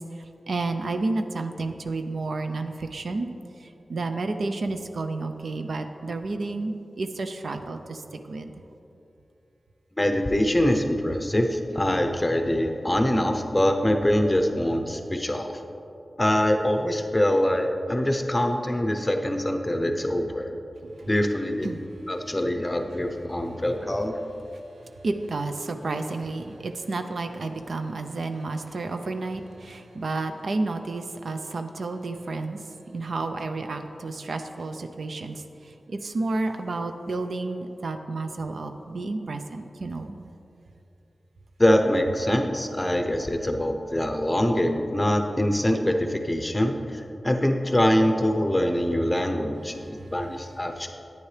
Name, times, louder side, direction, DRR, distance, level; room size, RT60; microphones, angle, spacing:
voice 1, 0.5-3.3 3.9-8.0 8.3-8.5 21.6-21.8 25.0-32.6 32.9-35.4 35.9-40.2, right 3 dB, 75° right, 7 dB, 0.5 m, -31 dB
voice 2, 10.0-15.6 16.2-20.5 21.1-21.7 22.1-24.2 41.6-50.9, left 1 dB, 15° left, 5 dB, 0.7 m, -24 dB
10.5 x 9.2 x 3.3 m, 2.8 s
wide cardioid pair, 110°, 0 cm